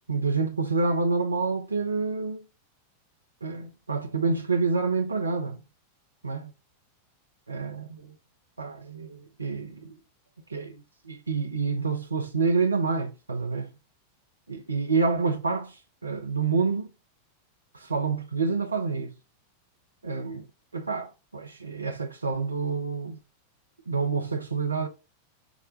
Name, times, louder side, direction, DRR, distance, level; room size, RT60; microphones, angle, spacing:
voice 1, 0.1-2.4 3.4-5.6 6.2-6.5 7.5-7.8 8.6-9.9 10.5-13.7 14.5-15.8 16.0-16.9 17.7-19.1 20.0-20.4 20.7-23.2 23.9-24.9, right 4 dB, 80° right, 0.7 m, -28 dB
5.0 x 2.2 x 3.8 m
figure-of-eight pair, 90°, 0 cm